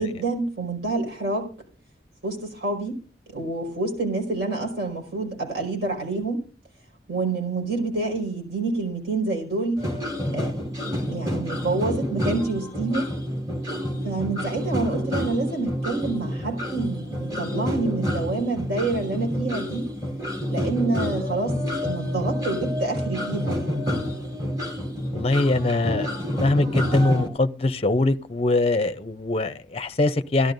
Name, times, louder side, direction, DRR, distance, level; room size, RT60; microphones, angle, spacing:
voice 1, 0.0-1.5 2.2-3.0 3.3-6.4 7.1-9.8 10.3-10.5 10.8-13.1 14.0-19.9 20.5-23.8, right 3 dB, 70° right, 4.9 m, -27 dB
sound 1, 9.8-27.3, equal, 20° right, 2.8 m, -28 dB
voice 2, 25.1-30.5, left 2 dB, 35° left, 0.6 m, -23 dB
17.0 x 12.0 x 2.6 m
head